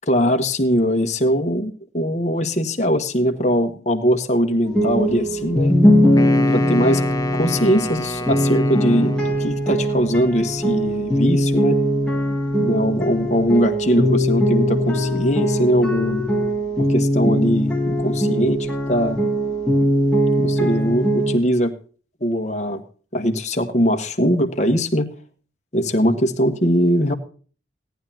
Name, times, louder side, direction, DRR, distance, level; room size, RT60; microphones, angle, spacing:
voice 1, 0.1-5.8 6.5-7.0 7.3-11.8 12.6-16.3 16.8-19.2 20.4-21.7 22.2-22.8 23.1-25.1 25.7-27.1, equal, 40° left, 4 dB, 1.2 m, -21 dB
sound 1, 4.7-21.4, equal, 5° left, 1.8 m, -20 dB
Wind instrument woodwind instrument, 6.1-9.6, left 1 dB, 20° left, 0.7 m, -29 dB
17.5 x 10.5 x 2.8 m, 0.39 s
head